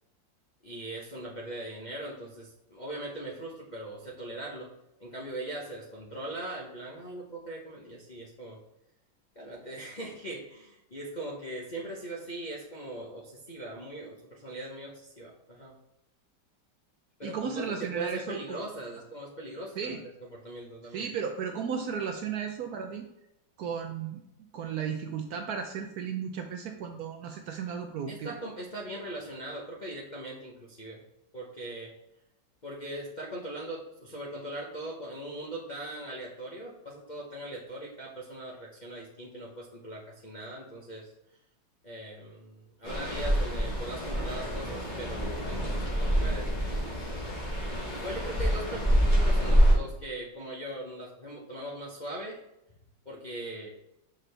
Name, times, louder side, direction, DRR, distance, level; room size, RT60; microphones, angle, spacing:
voice 1, 0.6-4.7 5.0-8.6 9.3-15.7 17.2-20.0 20.3-21.0 28.1-31.0 31.3-32.0 32.6-41.1 41.8-47.1 47.7-52.4 53.0-53.7, right 1 dB, 40° left, -5 dB, 0.6 m, -40 dB
voice 2, 17.2-18.6 19.8-20.0 20.9-23.1 23.6-24.2 24.5-28.3, right 6 dB, 70° right, 5 dB, 0.9 m, -34 dB
sound 1, 42.8-49.7, equal, 25° left, 1.7 m, -26 dB
6.0 x 5.0 x 3.3 m, 0.88 s
omnidirectional pair, 2.0 m